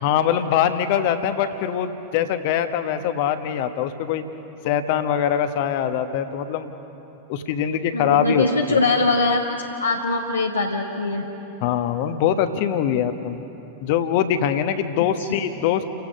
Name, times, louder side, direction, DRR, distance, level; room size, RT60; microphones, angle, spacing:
voice 1, 0.0-4.2 4.6-6.7 7.3-8.8 11.6-13.4 13.8-15.8, left 9 dB, 50° left, 9 dB, 1.2 m, -23 dB
voice 2, 7.9-11.2 15.2-15.3, left 3 dB, 80° left, -1 dB, 1.2 m, -22 dB
30.0 x 16.5 x 5.4 m, 3.0 s
figure-of-eight pair, 90°, 0 cm